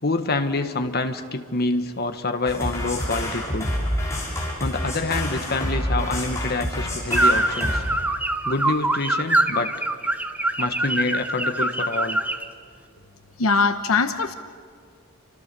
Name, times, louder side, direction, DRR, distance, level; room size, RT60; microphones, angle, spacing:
voice 1, 0.0-3.8 4.6-7.8 8.4-9.9 10.6-12.2, left 3 dB, 45° left, 7 dB, 1.4 m, -27 dB
sound 1, 2.5-7.8, equal, 15° left, 6.4 m, -27 dB
sound 2, 7.1-12.5, right 1 dB, 5° right, 1.0 m, -23 dB
voice 2, 13.4-14.3, left 4 dB, 75° left, 8 dB, 1.0 m, -21 dB
29.5 x 26.0 x 6.9 m, 2.1 s
head